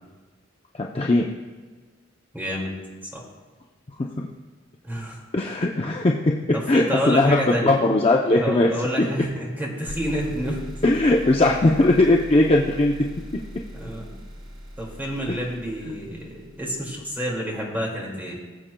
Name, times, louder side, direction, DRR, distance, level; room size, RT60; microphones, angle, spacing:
voice 1, 0.7-1.3 5.3-6.3 6.7-8.7 10.8-12.9, left 2 dB, 30° left, -1 dB, 0.5 m, -19 dB
voice 2, 2.3-2.8 3.1-3.2 4.8-5.2 6.5-7.8 8.4-10.6 13.7-14.1 14.8-18.4, equal, 10° right, -3 dB, 2.1 m, -29 dB
sound 1, 9.9-17.4, equal, 65° right, 1.9 m, -40 dB
20.0 x 7.3 x 2.2 m, 1.3 s
head